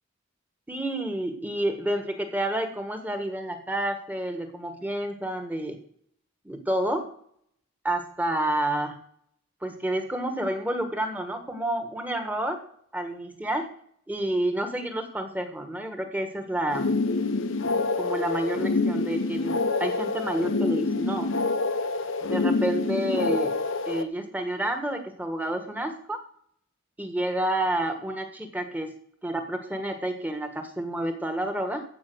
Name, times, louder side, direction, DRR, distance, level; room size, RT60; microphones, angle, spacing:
voice 1, 0.7-5.8 6.4-7.1 7.8-9.0 9.6-12.6 12.9-13.7 14.1-16.9 18.0-21.3 22.3-23.6 23.9-26.2 27.0-28.9 29.2-31.8, right 1 dB, 10° right, 6 dB, 1.4 m, -29 dB
sound 1, 16.7-24.0, left 3 dB, 75° left, 0.9 m, -27 dB
15.0 x 5.6 x 7.9 m, 0.65 s
head